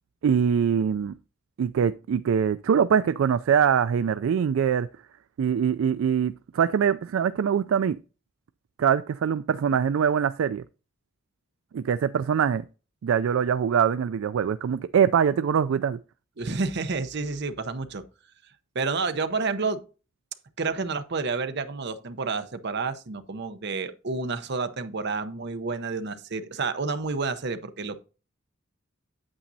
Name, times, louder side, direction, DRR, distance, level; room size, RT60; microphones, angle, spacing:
voice 1, 0.2-1.1 1.6-4.9 5.4-8.0 8.8-10.6 11.7-12.6 13.0-16.0, right 7 dB, 75° right, 0.3 m, -23 dB
voice 2, 16.4-18.0 18.7-19.8 20.6-28.0, right 4 dB, 55° right, 0.8 m, -30 dB
8.8 x 8.3 x 2.7 m
head